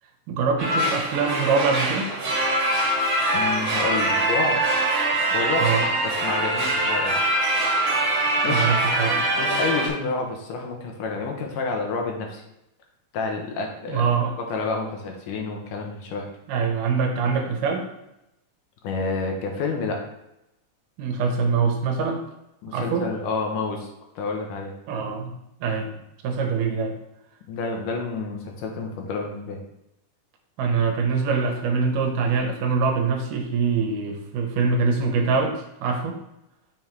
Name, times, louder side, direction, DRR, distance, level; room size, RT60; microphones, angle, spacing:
voice 1, 0.3-2.1 5.6-5.8 8.5-9.2 13.9-14.3 16.5-17.9 21.0-22.2 22.7-23.1 24.9-25.4 25.6-25.9 26.2-26.9 30.6-36.2, right 5 dB, 75° right, 3 dB, 2.3 m, -24 dB
sound 1, 0.6-9.9, right 1 dB, 45° right, 2.0 m, -23 dB
voice 2, 3.3-4.6 5.3-5.9 6.2-7.1 8.4-8.7 9.1-12.4 13.1-14.1 14.4-16.3 18.8-20.0 22.6-23.9 24.2-24.7 27.5-29.6, left 3 dB, 75° left, 2 dB, 2.5 m, -29 dB
5.7 x 5.5 x 4.6 m, 0.87 s
omnidirectional pair, 4.0 m